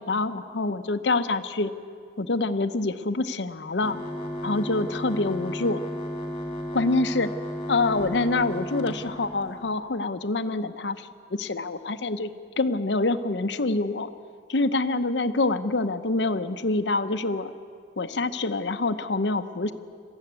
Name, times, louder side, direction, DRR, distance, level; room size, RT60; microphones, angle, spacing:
voice 1, 0.0-1.7 2.2-4.0 4.4-5.8 6.7-7.3 7.7-12.3 12.6-14.1 14.5-17.5 18.0-19.7, left 3 dB, 85° left, 9 dB, 0.9 m, -26 dB
sound 1, 3.8-9.7, equal, 30° left, 3.8 m, -34 dB
21.0 x 14.5 x 9.5 m, 2.3 s
head